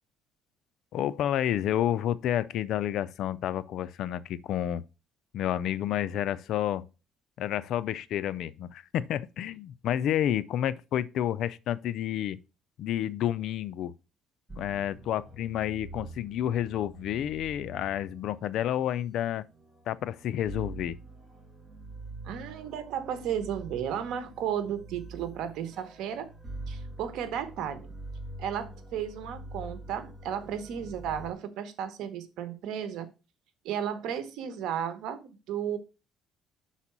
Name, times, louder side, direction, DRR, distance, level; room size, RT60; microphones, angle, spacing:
voice 1, 0.9-4.8 5.3-6.9 7.4-12.4 12.8-13.9 14.6-19.4 19.9-20.9, left 11 dB, 60° left, 0.4 m, -30 dB
sound 1, 14.5-31.3, right 2 dB, 10° right, 1.7 m, -45 dB
voice 2, 22.2-26.3 26.7-27.9 28.4-33.1 33.6-35.8, right 9 dB, 70° right, 1.1 m, -34 dB
6.0 x 4.1 x 6.0 m
cardioid pair, 135°, 0 cm